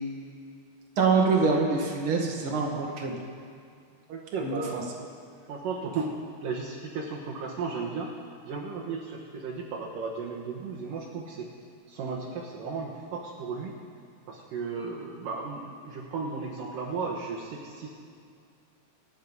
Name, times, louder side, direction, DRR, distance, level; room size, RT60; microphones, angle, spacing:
voice 1, 1.0-3.1 4.4-4.8, right 4 dB, 40° right, 0 dB, 2.1 m, -25 dB
voice 2, 4.1-5.1 5.5-6.1 6.4-8.1 8.5-11.5 11.9-13.8 14.3-17.9, right 4 dB, 70° right, -4 dB, 2.8 m, -35 dB
27.0 x 9.1 x 5.5 m, 2.3 s
omnidirectional pair, 4.5 m